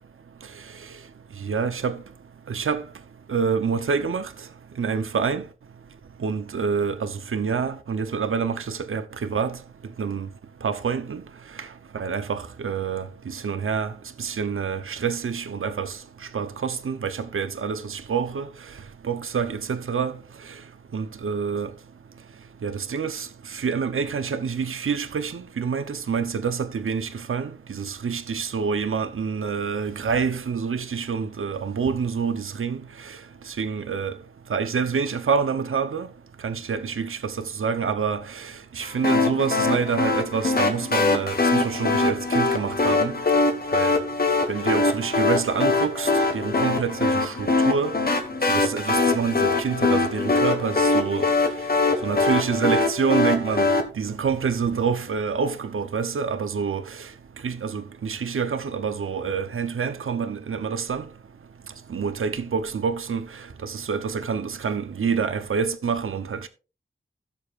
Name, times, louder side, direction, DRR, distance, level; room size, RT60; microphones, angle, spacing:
voice 1, 1.4-2.0 2.5-2.8 3.3-4.3 4.8-5.4 6.2-9.6 10.0-10.3 10.6-11.2 11.6-11.7 11.9-13.9 14.2-16.0 16.3-18.5 19.0-20.1 20.9-21.7 22.6-32.8 33.0-33.2 33.5-34.2 34.5-36.1 36.4-43.1 43.7-44.0 44.5-47.9 48.5-51.3 52.0-53.7 54.0-57.1 57.4-61.0 61.9-63.2 63.6-66.5, right 6 dB, 80° right, 0.8 m, -27 dB
sound 1, 39.0-53.8, left 3 dB, 45° left, 1.5 m, -22 dB
16.0 x 7.0 x 2.5 m
wide cardioid pair, 100°, 21 cm